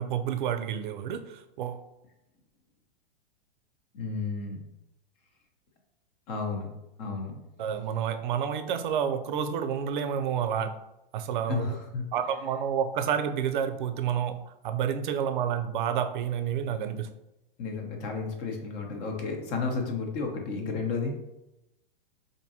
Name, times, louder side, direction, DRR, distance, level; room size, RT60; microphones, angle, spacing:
voice 1, 0.0-1.8 7.6-10.8 11.1-11.8 12.1-17.1, right 8 dB, 55° right, 10 dB, 0.5 m, -29 dB
voice 2, 3.9-4.6 6.3-6.7 7.0-7.4 11.5-12.1 17.6-21.2, left 4 dB, 45° left, 2 dB, 0.8 m, -32 dB
4.4 x 2.6 x 2.7 m, 0.90 s
figure-of-eight pair, 105°, 29 cm